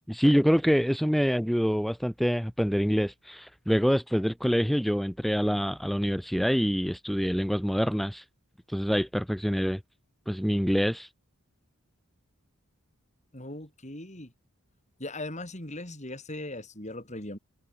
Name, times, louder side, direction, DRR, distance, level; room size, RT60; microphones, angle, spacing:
voice 1, 0.1-8.2 8.7-9.8 10.3-11.1, equal, ahead, 5.0 m, -26 dB
voice 2, 13.3-14.3 15.0-17.4, left 1 dB, 30° left, 6.1 m, -39 dB
head